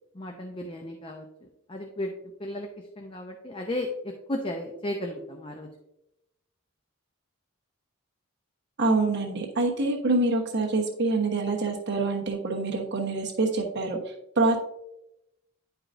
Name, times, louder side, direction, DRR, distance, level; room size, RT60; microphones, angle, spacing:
voice 1, 0.1-1.3 1.7-2.1 2.4-2.7 3.0-5.7, left 1 dB, 25° left, 3 dB, 0.5 m, -34 dB
voice 2, 8.8-14.6, right 3 dB, 50° right, -1 dB, 1.1 m, -26 dB
10.0 x 4.8 x 2.6 m, 0.86 s
head